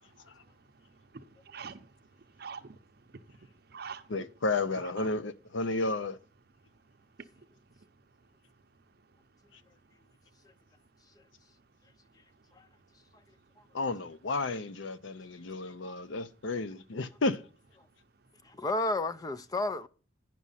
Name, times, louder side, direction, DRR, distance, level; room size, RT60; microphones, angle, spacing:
voice 1, 0.1-4.3 4.7-5.1 6.6-11.0 11.3-13.8 15.0-16.1 18.0-18.1 18.4-18.5, right 5 dB, 50° right, 0.6 m, -51 dB
voice 2, 4.1-6.2 13.7-17.4, left 3 dB, 75° left, 0.7 m, -32 dB
voice 3, 18.4-19.9, left 2 dB, 20° left, 0.3 m, -32 dB
9.3 x 6.2 x 5.6 m
head